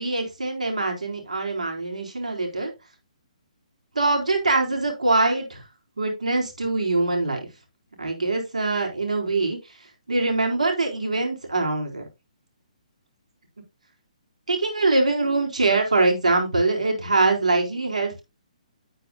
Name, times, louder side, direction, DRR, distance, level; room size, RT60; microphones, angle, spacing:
voice 1, 0.0-2.7 3.9-5.6 6.0-7.5 8.0-9.6 10.1-12.0 14.5-18.2, right 3 dB, 70° right, 1 dB, 4.2 m, -23 dB
11.0 x 9.0 x 2.3 m, 0.24 s
figure-of-eight pair, 130°, 4 cm